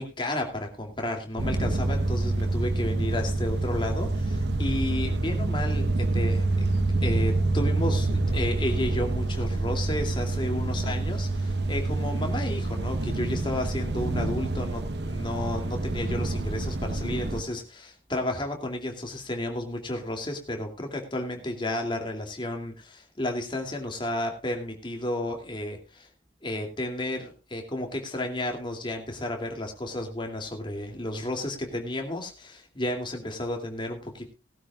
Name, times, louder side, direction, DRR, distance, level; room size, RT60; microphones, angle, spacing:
voice 1, 0.0-26.1 26.4-34.3, left 1 dB, 25° left, 3 dB, 2.6 m, -32 dB
sound 1, 1.4-17.4, right 2 dB, 65° right, 1.0 m, -27 dB
19.0 x 12.5 x 2.4 m, 0.31 s
head